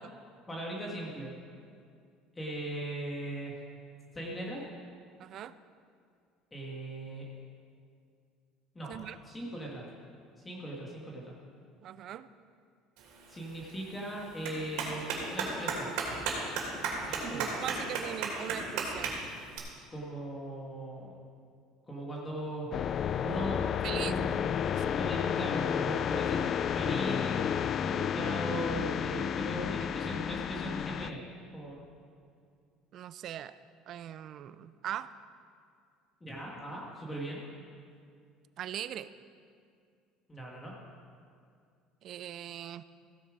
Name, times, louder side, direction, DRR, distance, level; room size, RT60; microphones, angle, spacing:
voice 1, 0.5-1.3 2.3-3.6 4.1-4.6 6.5-7.2 8.7-9.9 10.4-11.3 13.3-15.9 17.0-17.6 19.9-21.2 21.9-24.3 24.9-26.5 26.7-27.5 27.8-31.2 31.5-31.8 36.2-37.4 40.3-40.7, right 1 dB, 15° left, -3 dB, 1.5 m, -39 dB
voice 2, 5.2-5.5 8.9-9.2 11.8-12.3 17.2-19.2 23.8-24.2 29.8-29.9 32.9-33.6 33.9-35.1 38.6-39.1 42.0-42.8, right 11 dB, 45° right, 15 dB, 0.4 m, -40 dB
Clapping, 13.0-19.6, right 4 dB, 75° right, 2.8 m, -36 dB
sound 1, 22.7-31.1, left 8 dB, 35° left, 0.3 m, -31 dB
15.5 x 7.1 x 5.0 m, 2.3 s
cardioid pair, 140°, 0 cm